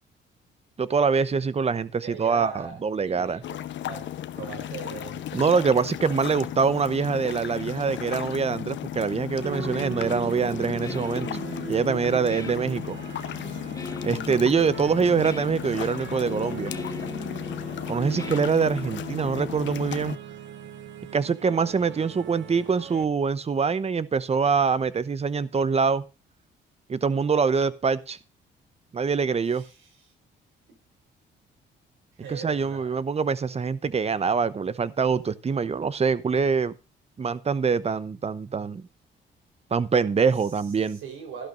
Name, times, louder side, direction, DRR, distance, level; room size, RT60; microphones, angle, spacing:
voice 1, 0.8-3.4 5.3-11.3 11.7-13.0 14.0-16.7 17.9-20.2 21.1-26.0 26.9-28.2 28.9-29.6 32.3-36.7 37.2-38.9 39.7-41.0, right 5 dB, 30° right, 0.8 m, -24 dB
voice 2, 2.0-3.6 3.9-5.7 29.5-29.9 30.7-30.8 32.2-32.9 40.8-41.5, right 6 dB, 85° right, 4.1 m, -40 dB
sound 1, 3.4-20.2, left 11 dB, 70° left, 0.9 m, -35 dB
sound 2, 9.3-23.0, right 6 dB, 70° right, 1.8 m, -39 dB
Guitar, 10.5-19.1, left 3 dB, 15° left, 1.1 m, -41 dB
13.5 x 12.0 x 2.6 m
cardioid pair, 90°, 20 cm